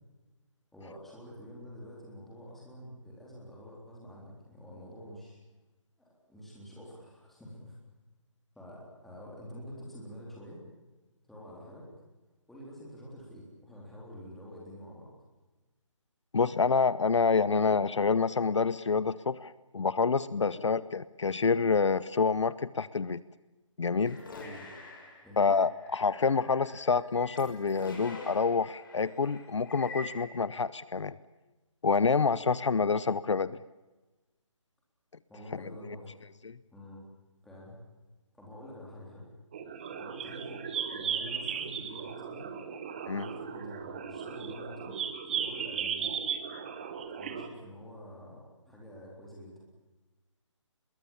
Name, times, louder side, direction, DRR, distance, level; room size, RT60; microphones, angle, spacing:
voice 1, 0.7-5.4 6.0-7.8 8.6-10.6 11.3-11.9 12.5-15.1 20.5-20.8 24.3-24.7 25.2-25.5 35.3-36.1 36.7-37.0 37.4-37.8 38.3-39.3 39.7-42.5 43.1-45.0 45.3-46.1 47.2-49.6, equal, ahead, -4 dB, 3.7 m, -47 dB
voice 2, 16.3-23.2 23.8-24.2 25.4-31.1 31.8-33.6 36.4-36.6 43.1-43.3, left 5 dB, 65° left, 18 dB, 0.8 m, -27 dB
sound 1, 24.1-30.4, left 2 dB, 40° left, 6.2 m, -46 dB
sound 2, 39.5-47.5, right 7 dB, 20° right, 1.2 m, -36 dB
24.5 x 22.0 x 7.3 m, 1.1 s
hypercardioid pair, 175°, 17 cm